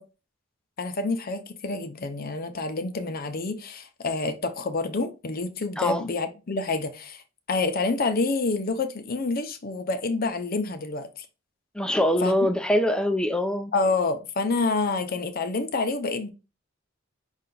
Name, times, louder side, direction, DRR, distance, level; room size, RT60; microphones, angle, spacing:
voice 1, 0.8-7.2 7.5-11.3 12.2-12.3 13.7-16.3, left 3 dB, 45° left, 0.6 m, -28 dB
voice 2, 11.7-13.7, left 1 dB, 5° left, 0.4 m, -23 dB
5.5 x 2.4 x 3.8 m
head